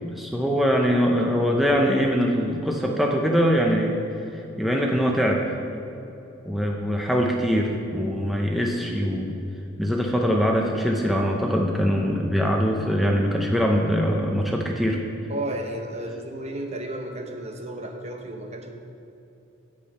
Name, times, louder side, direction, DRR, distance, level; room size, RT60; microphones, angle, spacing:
voice 1, 0.1-4.0 4.3-5.4 6.5-9.4 9.8-15.0, equal, ahead, -1 dB, 0.6 m, -23 dB
voice 2, 15.3-18.7, right 1 dB, 30° right, 3 dB, 0.8 m, -33 dB
8.5 x 8.5 x 5.4 m, 2.9 s
head